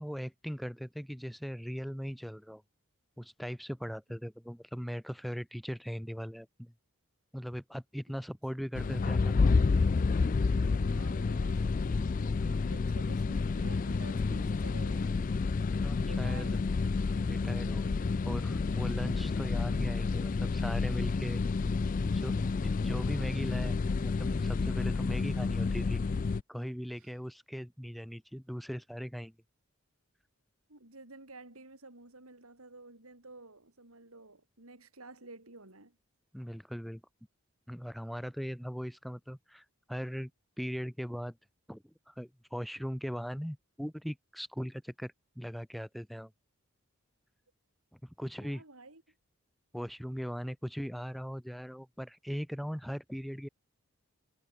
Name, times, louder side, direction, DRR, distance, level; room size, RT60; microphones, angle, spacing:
voice 1, 0.0-2.6 3.2-6.7 7.3-9.5 15.7-16.5 17.3-21.4 22.0-26.0 26.5-29.3 36.3-37.0 37.7-40.3 40.6-41.4 41.7-46.3 47.9-48.6 49.7-53.5, equal, ahead, 4.9 m, -39 dB
sound 1, 8.7-26.4, left 4 dB, 35° left, 0.3 m, -30 dB
voice 2, 10.7-15.1 16.0-16.7 27.0-27.1 30.7-36.0 48.4-49.1, right 2 dB, 80° right, 4.8 m, -51 dB
head